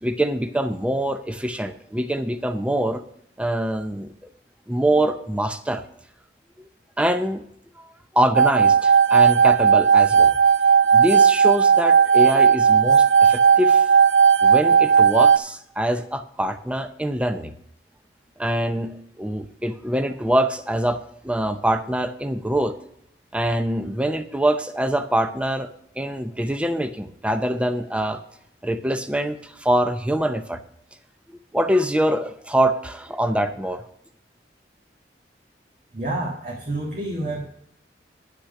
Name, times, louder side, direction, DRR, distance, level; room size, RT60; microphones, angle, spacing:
voice 1, 0.0-3.0 3.4-4.1 4.7-5.8 6.6-6.7 7.0-7.4 7.8-7.9 8.1-10.3 10.9-13.9 14.4-17.5 18.4-22.8 23.3-25.7 26.0-28.2 28.6-30.6 31.5-33.8, right 1 dB, 5° right, 9 dB, 0.6 m, -24 dB
sound 1, 8.3-15.4, right 6 dB, 85° right, 0.4 m, -15 dB
voice 2, 35.9-37.5, right 1 dB, 45° right, -2 dB, 1.7 m, -28 dB
10.0 x 6.1 x 6.5 m, 0.71 s
head